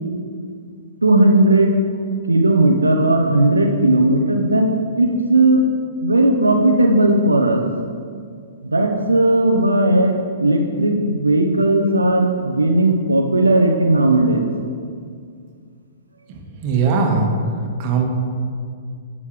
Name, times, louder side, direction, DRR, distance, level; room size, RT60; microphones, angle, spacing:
voice 1, 1.0-1.8 2.3-4.7 5.0-5.6 6.0-7.7 8.6-14.5, right 1 dB, 85° right, 3 dB, 0.8 m, -16 dB
voice 2, 16.3-17.3 17.8-18.1, right 5 dB, 40° right, 1 dB, 1.6 m, -20 dB
11.0 x 8.6 x 3.4 m, 2.2 s
figure-of-eight pair, 115°, 0 cm